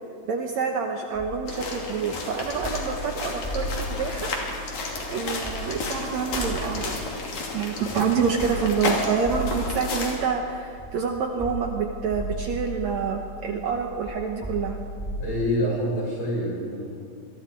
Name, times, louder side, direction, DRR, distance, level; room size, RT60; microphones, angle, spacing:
voice 1, 0.3-4.3 5.1-7.1 7.5-14.8, right 6 dB, 65° right, 3 dB, 2.1 m, -27 dB
sound 1, 1.1-15.5, left 1 dB, ahead, 2.1 m, -36 dB
sound 2, 1.5-10.2, left 2 dB, 55° left, 4.0 m, -32 dB
voice 2, 15.2-16.8, equal, 35° left, -4 dB, 7.1 m, -26 dB
26.5 x 21.5 x 4.6 m, 2.2 s
omnidirectional pair, 3.9 m